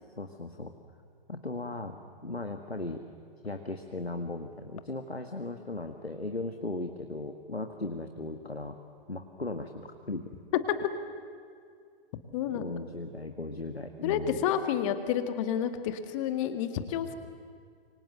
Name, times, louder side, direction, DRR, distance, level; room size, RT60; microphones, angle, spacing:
voice 1, 0.2-0.7 1.3-2.0 2.2-3.0 3.4-8.8 9.1-10.3 12.5-14.4, left 2 dB, 90° left, 5 dB, 1.7 m, -37 dB
voice 2, 12.3-12.7 14.0-17.1, left 9 dB, 30° left, 8 dB, 2.0 m, -30 dB
27.5 x 24.5 x 7.9 m, 2.2 s
figure-of-eight pair, 120°, 30 cm